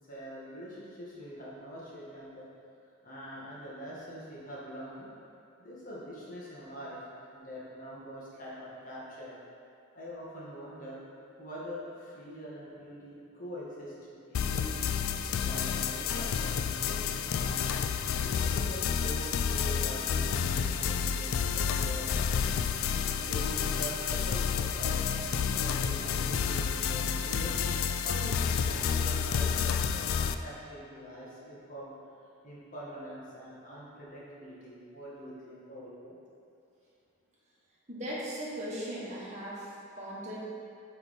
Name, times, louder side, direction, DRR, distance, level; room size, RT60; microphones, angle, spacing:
voice 1, 0.1-2.5 3.0-5.1 5.6-7.0 7.3-9.3 9.9-11.0 11.4-14.9 15.4-17.6 18.1-22.1 22.7-27.5 28.0-31.9 32.4-36.1, equal, 40° left, -7 dB, 1.4 m, -44 dB
sound 1, 14.3-30.3, left 7 dB, 75° left, 0.3 m, -30 dB
voice 2, 37.9-40.5, equal, 35° right, -7 dB, 1.3 m, -38 dB
8.2 x 3.5 x 4.2 m, 2.5 s
head